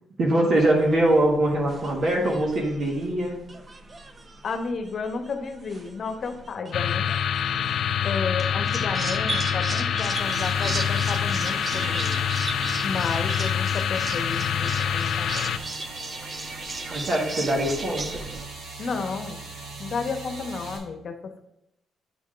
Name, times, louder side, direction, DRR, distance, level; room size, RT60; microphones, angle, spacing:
voice 1, 0.2-3.3 16.9-18.2, right 1 dB, 55° right, -1 dB, 1.5 m, -22 dB
sound 1, 0.5-18.4, right 3 dB, 30° right, 0.6 m, -37 dB
voice 2, 4.4-7.1 8.0-12.2 12.8-15.5 18.8-19.4 19.8-21.5, left 4 dB, 50° left, 6 dB, 1.0 m, -32 dB
sound 2, 6.7-15.6, left 8 dB, 70° left, 0.3 m, -26 dB
sound 3, 10.1-20.8, right 2 dB, 80° right, 2.3 m, -40 dB
8.3 x 3.6 x 4.9 m, 0.82 s
cardioid pair, 90°, 0 cm